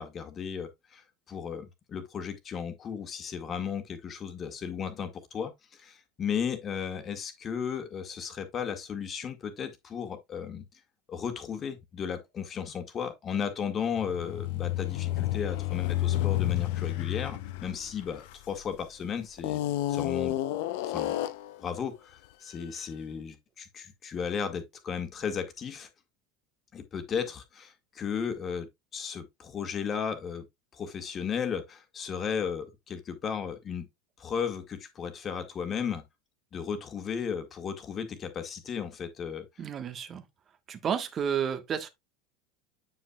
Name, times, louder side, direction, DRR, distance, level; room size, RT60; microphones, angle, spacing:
voice 1, 0.0-10.6 11.1-19.6 19.9-20.4 20.9-21.2 21.6-25.9 26.7-30.5 30.7-33.9 34.2-36.0 36.5-39.5, left 7 dB, 30° left, 1.7 m, -35 dB
sound 1, 13.9-18.8 19.4-21.6, left 14 dB, 60° left, 0.6 m, -30 dB
voice 2, 39.6-40.2 40.7-41.9, right 8 dB, 35° right, 1.3 m, -31 dB
9.1 x 5.6 x 2.3 m
figure-of-eight pair, 80°, 0 cm